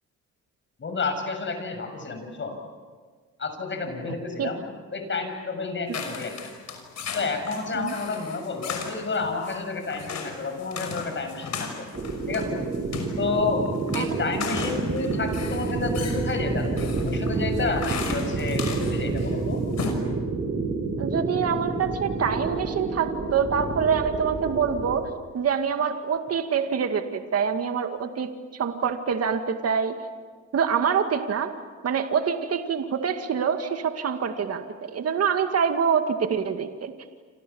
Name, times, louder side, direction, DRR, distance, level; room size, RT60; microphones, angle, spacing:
voice 1, 0.8-2.5 3.4-4.6 4.9-6.4 7.1-11.9 12.3-12.6 13.2-13.7 13.9-19.6, left 4 dB, 40° left, 6 dB, 7.3 m, -30 dB
sound 1, 5.9-19.3 19.6-19.9, left 5 dB, 60° left, 5.9 m, -36 dB
sound 2, 11.9-25.0, right 3 dB, 35° right, 7.6 m, -29 dB
voice 2, 21.0-30.0 30.5-31.5 31.8-36.9, right 7 dB, 55° right, 6 dB, 2.2 m, -25 dB
29.0 x 27.5 x 7.2 m, 1.5 s
cardioid pair, 90°, 30 cm